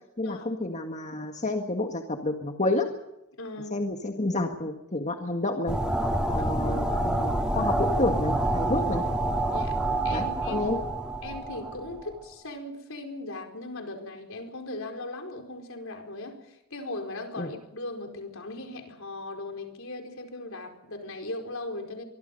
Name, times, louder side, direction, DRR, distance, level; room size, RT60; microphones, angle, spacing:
voice 1, 0.2-2.9 3.7-5.8 6.3-9.0 10.1-10.8 17.4-17.5, left 2 dB, 30° left, 3 dB, 1.8 m, -29 dB
voice 2, 3.3-3.8 6.4-6.5 9.5-10.6 11.2-22.0, left 2 dB, 65° left, 5 dB, 4.8 m, -38 dB
sound 1, 5.7-12.1, right 1 dB, 5° right, 2.3 m, -27 dB
24.5 x 23.5 x 5.5 m, 0.86 s
head